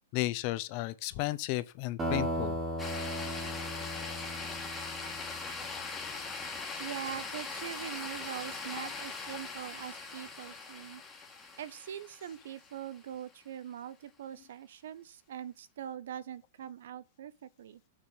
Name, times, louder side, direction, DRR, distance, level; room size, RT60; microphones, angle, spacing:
voice 1, 0.1-2.6, left 18 dB, 35° left, 0.5 m, -33 dB
sound 1, 2.0-6.3, equal, 15° right, 1.4 m, -37 dB
sound 2, 2.8-13.1, left 4 dB, 10° left, 1.3 m, -41 dB
voice 2, 6.8-11.0 11.6-17.8, right 10 dB, 65° right, 0.7 m, -42 dB
6.6 x 3.7 x 6.1 m
supercardioid pair, 170°, 0 cm